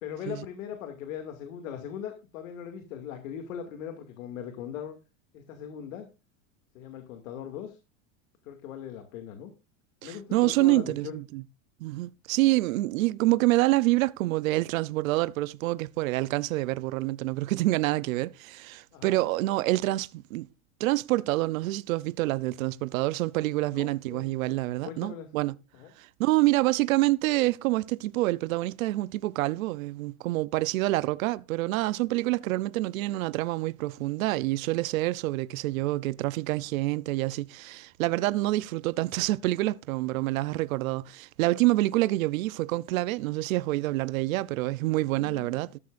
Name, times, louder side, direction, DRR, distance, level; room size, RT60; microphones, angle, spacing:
voice 1, 0.0-5.0 5.3-6.1 6.7-7.8 8.4-9.5 10.0-11.2 18.9-19.3 23.7-24.3 24.8-25.3 25.7-25.9 45.1-45.6, left 9 dB, 80° left, 2.4 m, -39 dB
voice 2, 10.0-11.4 11.8-20.5 20.8-25.5 26.0-45.8, right 18 dB, 80° right, 0.7 m, -27 dB
13.5 x 13.0 x 2.5 m
supercardioid pair, 165°, 40 cm